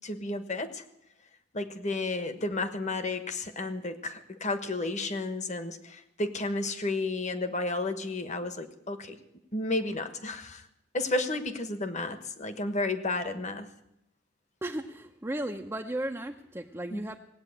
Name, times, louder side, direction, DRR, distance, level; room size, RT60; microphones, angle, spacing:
voice 1, 0.0-0.8 1.5-9.2 9.5-10.6 10.9-13.7 16.9-17.0, left 2 dB, 35° left, 9 dB, 1.3 m, -32 dB
voice 2, 14.6-17.2, right 1 dB, 15° right, 1 dB, 0.7 m, -35 dB
18.5 x 8.8 x 8.7 m, 0.84 s
head